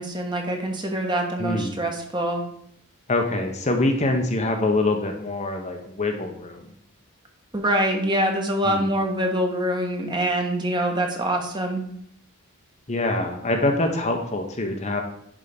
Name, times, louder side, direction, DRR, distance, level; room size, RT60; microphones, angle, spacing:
voice 1, 0.0-2.4 7.5-11.8, right 1 dB, 20° right, 2 dB, 1.3 m, -25 dB
voice 2, 1.4-1.8 3.1-6.7 8.6-8.8 12.9-15.0, left 2 dB, 30° left, 3 dB, 0.9 m, -24 dB
10.5 x 3.7 x 5.2 m, 0.69 s
head